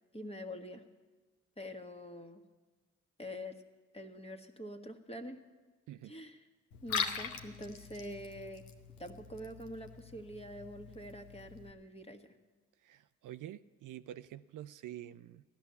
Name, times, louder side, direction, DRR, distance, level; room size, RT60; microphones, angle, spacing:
voice 1, 0.1-0.8 1.6-2.4 3.2-3.6 3.9-5.4 6.0-6.4 6.8-8.7 9.0-12.4, equal, 20° left, 5 dB, 1.5 m, -45 dB
Liquid, 6.7-11.7, left 6 dB, 90° left, 0.9 m, -42 dB
voice 2, 12.8-15.4, right 12 dB, 65° right, 12 dB, 0.5 m, -47 dB
14.5 x 11.0 x 6.9 m, 1.3 s
hypercardioid pair, 45°, 34 cm